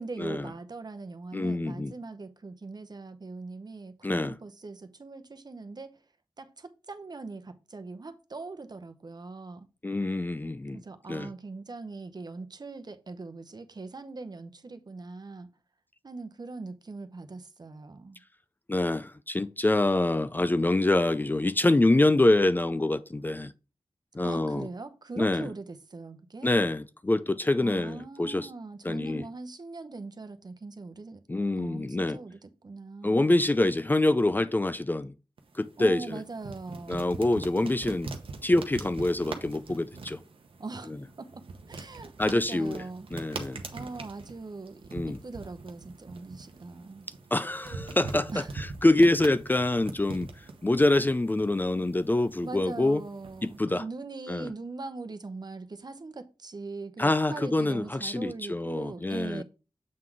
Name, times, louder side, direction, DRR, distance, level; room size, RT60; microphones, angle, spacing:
voice 1, 0.0-6.0 6.4-9.7 10.7-15.5 16.0-18.2 24.2-26.5 27.6-31.2 31.6-33.3 35.8-37.2 40.6-40.9 41.2-43.1 43.7-44.8 45.1-47.1 48.3-48.5 52.4-59.4, right 3 dB, 50° right, 0.8 m, -41 dB
voice 2, 1.3-1.9 4.0-4.4 9.8-10.8 11.1-11.3 18.7-23.5 24.1-24.7 25.2-25.5 26.4-28.5 28.8-29.2 31.3-32.2 33.0-35.1 35.5-36.2 36.9-38.1 38.4-40.2 42.2-42.8 43.1-43.6 44.9-45.2 47.3-50.3 50.6-53.0 53.6-53.8 54.3-54.5 57.0-59.4, left 2 dB, 20° left, 0.4 m, -25 dB
sound 1, 35.4-53.6, right 3 dB, 90° right, 0.9 m, -43 dB
7.6 x 3.8 x 4.6 m
wide cardioid pair, 60°, 9 cm